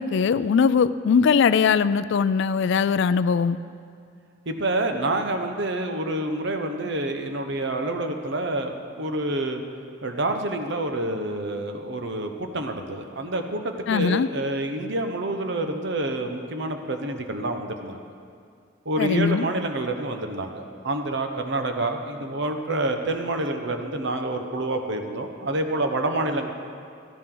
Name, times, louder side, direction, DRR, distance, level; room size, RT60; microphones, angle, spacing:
voice 1, 0.0-3.6 13.9-14.3 19.0-19.5, left 6 dB, 65° left, 15 dB, 0.4 m, -21 dB
voice 2, 4.5-9.6 10.0-18.0 18.8-26.5, right 2 dB, 65° right, 5 dB, 1.0 m, -28 dB
15.5 x 13.0 x 3.9 m, 2.3 s
head